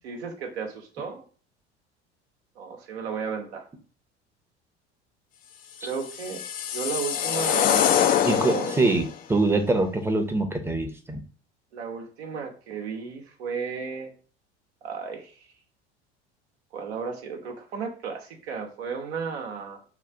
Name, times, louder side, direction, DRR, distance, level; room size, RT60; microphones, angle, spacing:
voice 1, 0.0-1.2 2.6-3.7 5.8-6.4 6.7-8.7 11.7-14.1 14.8-15.3 16.7-19.8, right 5 dB, 65° right, 3 dB, 1.0 m, -34 dB
sound 1, 5.9-9.1, left 9 dB, 25° left, 0.4 m, -24 dB
voice 2, 8.2-11.2, right 2 dB, 5° right, 5 dB, 0.8 m, -24 dB
3.9 x 2.4 x 4.5 m, 0.40 s
figure-of-eight pair, 70°, 34 cm